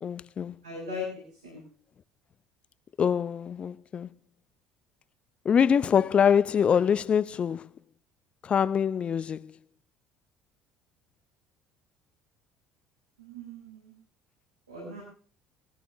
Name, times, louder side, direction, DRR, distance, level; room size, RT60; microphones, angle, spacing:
voice 1, 0.0-0.6 3.0-4.1 5.4-7.7 8.4-9.5, left 7 dB, 40° left, 0.7 m, -24 dB
voice 2, 0.6-1.1 1.4-1.6 13.2-13.9 14.7-15.0, left 3 dB, 85° right, 6.9 m, -38 dB
19.0 x 14.0 x 3.5 m
figure-of-eight pair, 60°, 3 cm